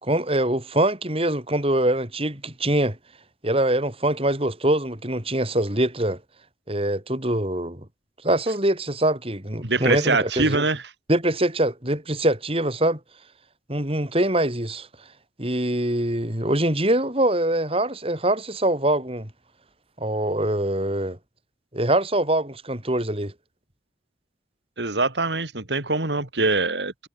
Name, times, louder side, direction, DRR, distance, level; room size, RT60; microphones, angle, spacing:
voice 1, 0.0-3.0 3.4-6.2 6.7-7.8 8.2-10.6 11.1-13.0 13.7-14.9 15.4-19.3 20.0-21.2 21.7-23.3, right 1 dB, 30° right, 5.0 m, -23 dB
voice 2, 9.6-10.9 24.8-27.1, right 3 dB, 75° right, 3.1 m, -23 dB
head